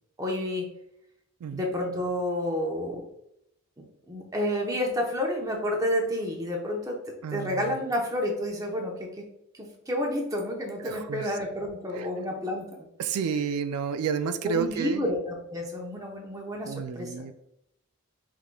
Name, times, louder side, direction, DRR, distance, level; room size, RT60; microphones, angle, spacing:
voice 1, 0.2-0.8 1.5-3.0 3.8-7.0 7.3-9.1 9.5-12.9 14.4-17.2, left 1 dB, 15° right, 0 dB, 0.8 m, -30 dB
voice 2, 7.2-7.7 10.8-11.4 11.9-12.1 13.0-15.0 16.7-17.3, right 6 dB, 90° right, 10 dB, 0.4 m, -31 dB
5.5 x 3.6 x 2.2 m, 0.79 s
head